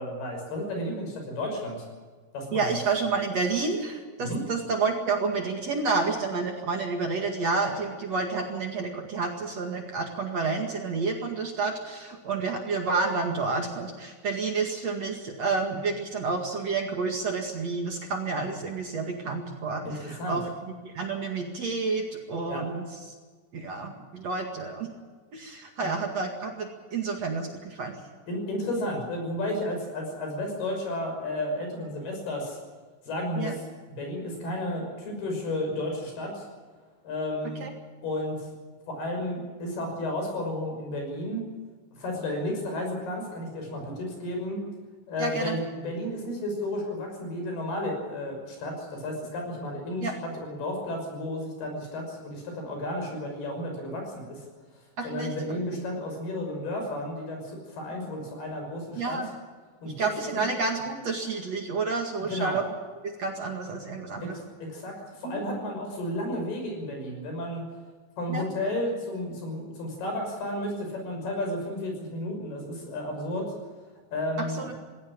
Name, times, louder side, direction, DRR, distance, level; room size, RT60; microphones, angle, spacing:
voice 1, 0.0-1.9 2.3-2.8 4.2-4.4 19.8-20.4 22.5-22.7 25.8-25.9 28.3-32.6 33.1-36.5 37.0-37.6 38.0-38.5 38.9-41.5 41.9-44.6 45.1-54.4 55.0-59.2 59.8-60.4 62.3-62.6 64.2-67.6 68.2-73.5 74.1-74.7, left 1 dB, 70° left, 2 dB, 7.9 m, -32 dB
voice 2, 2.5-20.4 20.8-22.8 23.5-24.9 25.3-28.0 33.4-33.5 37.6-37.7 43.9-44.0 45.2-45.6 50.0-50.1 55.0-55.6 59.0-59.3 60.0-62.6 63.0-64.4 65.2-65.4 68.3-68.4 74.6-74.7, right 4 dB, 50° right, 2 dB, 2.7 m, -30 dB
19.5 x 17.5 x 8.8 m, 1.5 s
omnidirectional pair, 4.6 m